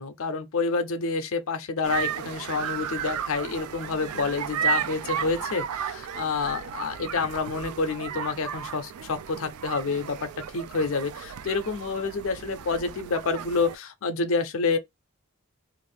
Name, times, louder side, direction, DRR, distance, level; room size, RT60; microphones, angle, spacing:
voice 1, 0.0-14.8, left 4 dB, 65° left, 0.5 m, -28 dB
sound 1, 1.8-13.8, right 8 dB, 90° right, 0.3 m, -34 dB
2.5 x 2.4 x 3.2 m
head